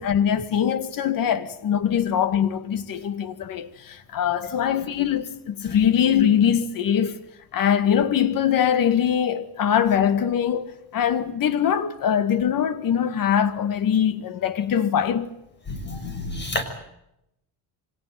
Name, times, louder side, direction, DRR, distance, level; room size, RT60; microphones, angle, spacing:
voice 1, 0.0-7.2 7.5-15.3, left 9 dB, 55° left, 2.2 m, -22 dB
voice 2, 15.7-16.6, left 2 dB, 25° left, 6.2 m, -30 dB
25.5 x 18.5 x 9.3 m
cardioid pair, 115°, 39 cm